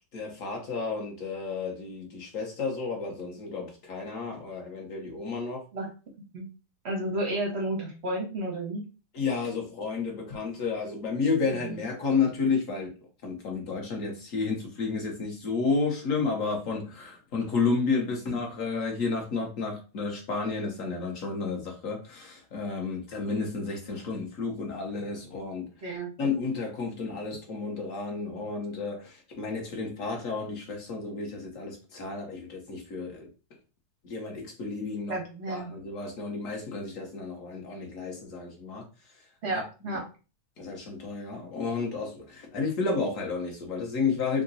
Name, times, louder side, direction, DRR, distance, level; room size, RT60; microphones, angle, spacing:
voice 1, 0.1-5.6 9.1-12.9 13.2-25.7 26.2-33.3 34.0-35.2 35.5-38.8 39.5-40.0 40.6-44.4, left 4 dB, 50° left, 1 dB, 1.0 m, -31 dB
voice 2, 6.8-8.8 11.5-11.7 25.8-26.1 35.1-35.7 39.4-40.0, right 1 dB, 55° right, 0 dB, 0.7 m, -32 dB
3.7 x 2.2 x 3.9 m, 0.33 s
omnidirectional pair, 2.3 m